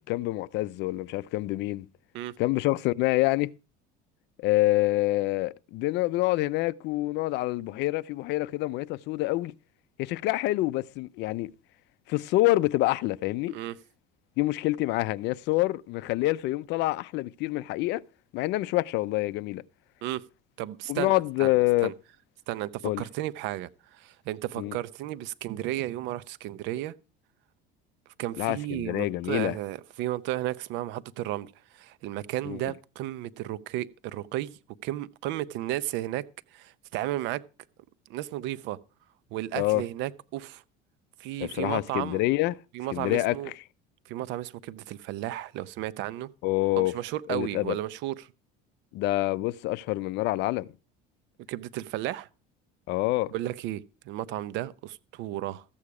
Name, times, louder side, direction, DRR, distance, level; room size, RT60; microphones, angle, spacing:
voice 1, 0.1-1.9 2.4-3.5 4.4-9.5 10.0-11.5 12.1-13.6 14.4-18.0 18.3-19.6 20.9-21.9 22.8-23.0 24.6-24.8 28.4-29.6 32.5-32.6 39.5-39.8 41.4-42.6 42.9-43.4 46.4-46.9 47.3-47.8 48.9-50.7 52.9-53.3, left 18 dB, 60° left, 0.6 m, -26 dB
voice 2, 20.6-21.5 21.8-21.9 22.5-26.9 28.2-36.2 36.5-37.4 38.1-38.8 39.3-40.6 41.2-42.2 42.7-43.5 44.1-46.3 46.8-48.3 51.5-52.3 53.3-55.6, right 14 dB, 65° right, 0.8 m, -33 dB
14.0 x 8.6 x 4.8 m
cardioid pair, 130°, 20 cm